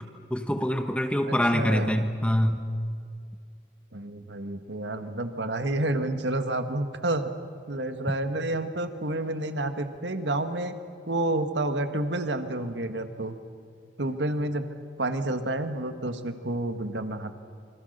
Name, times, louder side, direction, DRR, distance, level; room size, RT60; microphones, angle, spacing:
voice 1, 0.3-2.6, equal, 5° left, 6 dB, 1.0 m, -25 dB
voice 2, 1.3-2.0 3.9-7.3 7.7-10.7 11.1-13.4 14.0-14.6 15.0-17.3, right 2 dB, 75° right, 8 dB, 1.7 m, -29 dB
27.0 x 25.0 x 6.7 m, 2.3 s
head